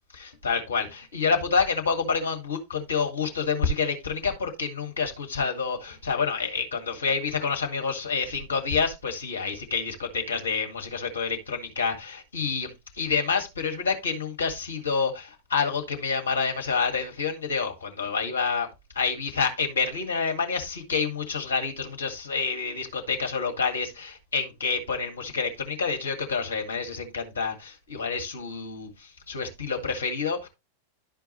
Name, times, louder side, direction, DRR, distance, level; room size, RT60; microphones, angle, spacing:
voice 1, 0.1-18.7 19.0-30.5, left 5 dB, 70° left, 1.6 m, -28 dB
12.0 x 4.6 x 3.0 m
figure-of-eight pair, 90°, 0 cm